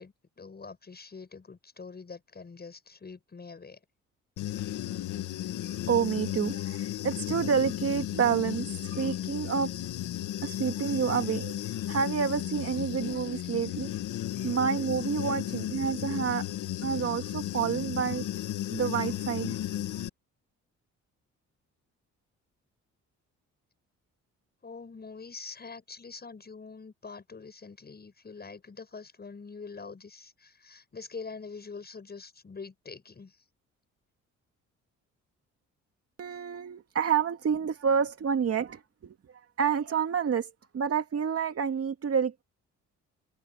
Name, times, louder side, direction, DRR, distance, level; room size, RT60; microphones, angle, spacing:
voice 1, 0.0-3.8 24.6-33.3, left 4 dB, 35° left, 7.4 m, -44 dB
Human voice / Buzz, 4.4-20.1, left 12 dB, 80° left, 2.5 m, -34 dB
voice 2, 5.9-9.7 10.4-11.6 11.9-13.9 14.4-16.5 16.8-18.3 18.7-19.6 36.2-39.2 39.6-42.4, right 7 dB, 50° right, 2.5 m, -29 dB
cardioid pair, 90°, 30 cm